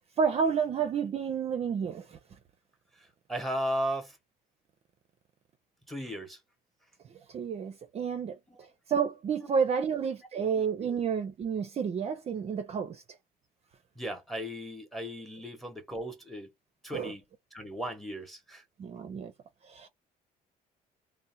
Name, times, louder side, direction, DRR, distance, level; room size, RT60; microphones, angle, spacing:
voice 1, 0.2-2.2 7.3-8.4 8.9-13.0 16.9-17.1 18.8-19.3 19.6-19.9, right 6 dB, 40° right, 0.5 m, -30 dB
voice 2, 3.3-4.2 5.9-6.4 8.5-8.7 9.4-9.5 10.9-11.0 14.0-16.5 16.8-17.2 17.5-18.6, equal, ahead, 0.9 m, -36 dB
2.6 x 2.1 x 2.7 m
cardioid pair, 110°, 17 cm